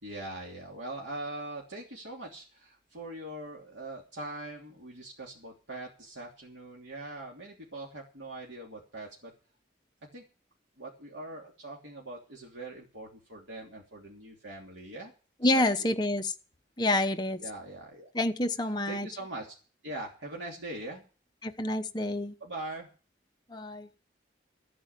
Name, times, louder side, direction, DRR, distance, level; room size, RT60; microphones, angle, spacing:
voice 1, 0.0-9.3 10.1-10.2 10.8-15.1 15.4-15.9 17.4-18.1 18.9-19.5 19.8-21.1 22.4-22.9, right 2 dB, 80° right, -2 dB, 3.0 m, -42 dB
voice 2, 15.4-16.3 16.8-17.4 18.1-19.1 21.4-22.3 23.5-23.9, left 1 dB, 25° left, 6 dB, 0.9 m, -28 dB
14.5 x 8.8 x 6.7 m, 0.36 s
head